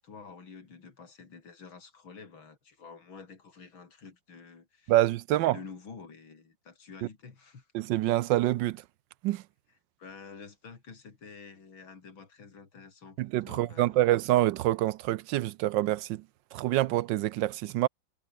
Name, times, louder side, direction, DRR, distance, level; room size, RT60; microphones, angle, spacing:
voice 1, 0.0-4.9 5.5-7.7 10.0-14.1, left 5 dB, 85° left, 4.0 m, -49 dB
voice 2, 4.9-5.6 7.7-8.8 9.2-9.4 13.2-16.2 16.5-17.9, right 15 dB, 75° right, 1.2 m, -26 dB
omnidirectional pair, 2.1 m